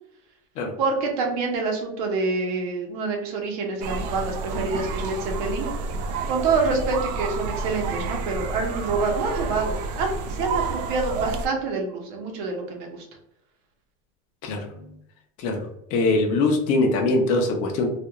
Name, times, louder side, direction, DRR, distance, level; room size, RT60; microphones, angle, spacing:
voice 1, 0.8-5.7 6.3-13.1, right 4 dB, 60° right, 1 dB, 0.8 m, -26 dB
sound 1, 3.8-11.5, right 4 dB, 80° right, 0.4 m, -30 dB
voice 2, 15.9-17.9, left 2 dB, 35° left, 2 dB, 0.5 m, -22 dB
2.4 x 2.3 x 2.8 m, 0.76 s
supercardioid pair, 170°, 21 cm